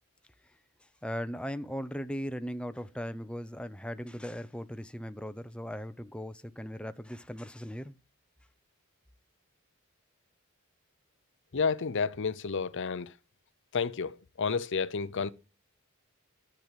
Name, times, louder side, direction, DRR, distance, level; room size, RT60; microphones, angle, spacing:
voice 1, 1.0-7.9, equal, 5° left, 0.7 m, -38 dB
voice 2, 11.5-13.2 13.7-15.3, left 5 dB, 55° left, 0.6 m, -31 dB
12.5 x 7.6 x 8.2 m
head